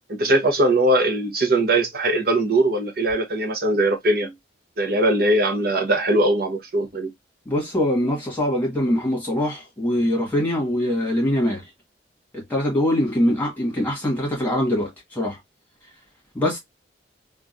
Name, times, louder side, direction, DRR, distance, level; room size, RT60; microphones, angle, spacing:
voice 1, 0.1-4.3 4.8-7.1, right 1 dB, 55° right, 0.8 m, -20 dB
voice 2, 7.4-11.6 12.3-15.4 16.3-16.6, left 1 dB, 10° left, 1.5 m, -23 dB
3.7 x 2.4 x 2.5 m
head